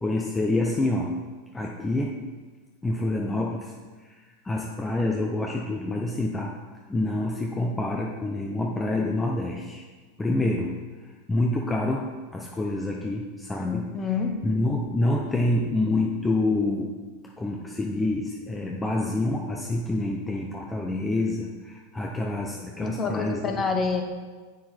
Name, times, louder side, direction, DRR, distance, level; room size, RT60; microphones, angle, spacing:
voice 1, 0.0-1.2 1.5-2.2 2.8-3.7 4.0-4.2 4.4-6.6 6.9-9.8 10.2-10.8 11.3-13.9 14.4-23.6, left 2 dB, 15° left, -1 dB, 0.7 m, -27 dB
voice 2, 13.6-14.3 22.7-24.0, left 5 dB, 30° left, 5 dB, 1.1 m, -28 dB
7.5 x 6.2 x 4.4 m, 1.4 s
hypercardioid pair, 110°, 0 cm